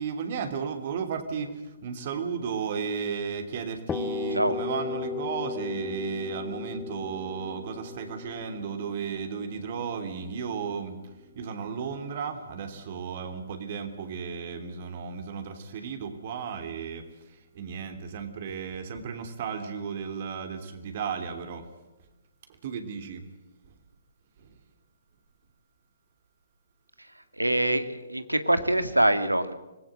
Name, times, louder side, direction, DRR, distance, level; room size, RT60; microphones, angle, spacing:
voice 1, 0.0-21.7 22.5-23.3 23.7-23.8 24.4-24.6, right 6 dB, 45° right, 7 dB, 3.1 m, -34 dB
sound 1, 3.9-11.6, left 5 dB, 10° left, 1.1 m, -36 dB
voice 2, 27.4-29.5, right 1 dB, 90° right, 10 dB, 1.9 m, -24 dB
25.0 x 19.5 x 7.9 m, 1.0 s
figure-of-eight pair, 125°, 0 cm